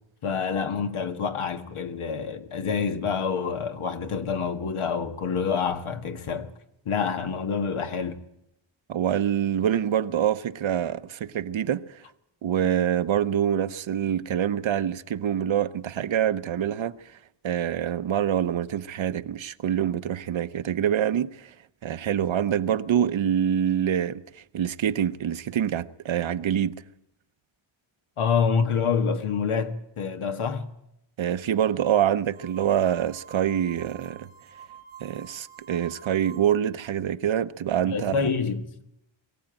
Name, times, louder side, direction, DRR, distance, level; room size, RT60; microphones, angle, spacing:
voice 1, 0.2-6.5 6.9-8.2 28.2-30.7 37.9-38.8, left 6 dB, 85° left, 1.8 m, -27 dB
voice 2, 8.9-12.0 12.4-17.0 17.4-21.5 21.8-26.8 31.2-34.3 35.0-38.2, right 9 dB, 70° right, 0.9 m, -25 dB
sound 1, 32.4-36.7, right 8 dB, 85° right, 1.4 m, -47 dB
23.0 x 15.5 x 9.0 m
wide cardioid pair, 130°, 49 cm